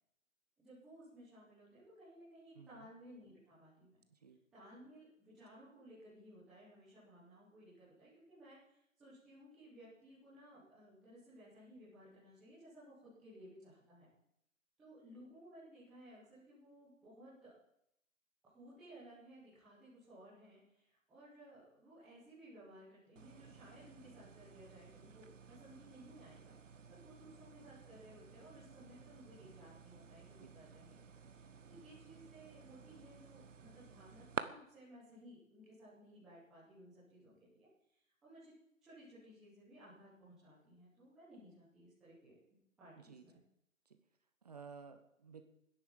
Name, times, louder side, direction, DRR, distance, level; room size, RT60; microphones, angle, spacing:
voice 1, 0.6-4.0 4.5-14.1 14.8-17.5 18.4-31.0 31.3-38.5 38.8-43.4, equal, ahead, -12 dB, 0.9 m, -59 dB
voice 2, 2.5-2.9 4.1-4.4 30.4-30.5 43.0-43.2 43.9-44.0 44.4-45.4, right 5 dB, 30° right, 8 dB, 1.1 m, -54 dB
sound 1, 23.1-34.4, right 6 dB, 65° right, 1.1 m, -51 dB
14.5 x 10.5 x 7.2 m, 0.78 s
hypercardioid pair, 165°, 40 cm